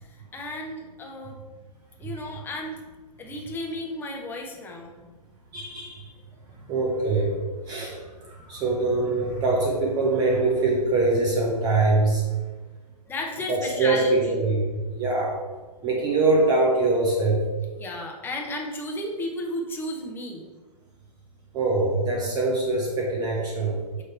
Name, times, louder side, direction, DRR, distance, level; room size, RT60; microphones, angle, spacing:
voice 1, 0.1-1.4 2.0-2.8 3.2-4.9 13.1-14.3 17.8-20.5, left 1 dB, 10° left, 0 dB, 0.8 m, -33 dB
voice 2, 5.5-6.1 6.7-7.3 7.7-12.2 13.5-15.4 15.8-17.4 21.5-23.8, right 2 dB, 20° right, -3 dB, 1.1 m, -23 dB
6.4 x 3.1 x 5.5 m, 1.3 s
figure-of-eight pair, 120°, 20 cm